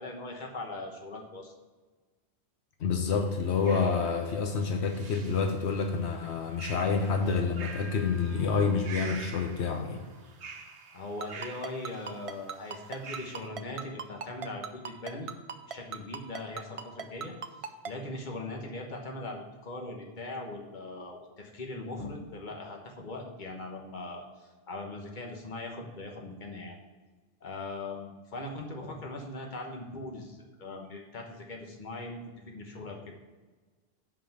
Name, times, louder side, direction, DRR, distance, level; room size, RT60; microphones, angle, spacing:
voice 1, 0.0-1.5 10.9-15.3 15.7-17.3 17.8-26.8 27.4-32.2 32.4-33.1, left 2 dB, 45° left, 1 dB, 1.3 m, -40 dB
voice 2, 2.8-10.0, left 5 dB, 80° left, 4 dB, 1.0 m, -28 dB
sound 1, 3.1-13.5, right 4 dB, 90° right, 1.1 m, -47 dB
Ringtone, 11.2-17.9, right 7 dB, 45° right, 0.4 m, -37 dB
5.7 x 5.1 x 6.6 m, 1.3 s
omnidirectional pair, 1.1 m